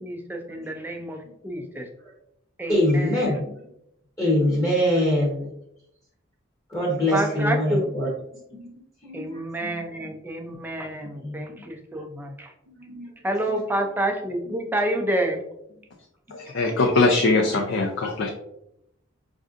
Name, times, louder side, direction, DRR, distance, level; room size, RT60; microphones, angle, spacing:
voice 1, 0.0-1.9 2.6-3.5 7.1-8.1 9.1-12.5 13.2-15.4, right 1 dB, 10° right, 3 dB, 0.4 m, -29 dB
voice 2, 2.7-3.4 4.2-5.5 6.7-8.1 8.6-8.7 9.0-9.4 9.7-9.8 11.1-11.4 12.8-13.1 13.5-13.6, left 1 dB, 15° left, -4 dB, 0.8 m, -23 dB
voice 3, 16.3-18.3, left 3 dB, 60° left, 1 dB, 0.4 m, -21 dB
5.2 x 2.6 x 2.4 m, 0.79 s
head